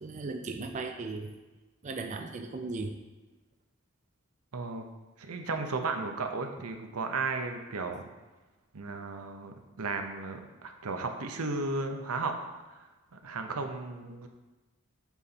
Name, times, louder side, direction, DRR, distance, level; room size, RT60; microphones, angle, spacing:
voice 1, 0.0-1.3 1.8-3.0, right 3 dB, 35° right, 5 dB, 0.4 m, -37 dB
voice 2, 4.5-4.8 5.2-8.1 8.7-12.4 12.7-12.8 13.2-14.3, right 3 dB, 90° right, 5 dB, 0.8 m, -34 dB
8.1 x 4.1 x 4.2 m, 1.2 s
head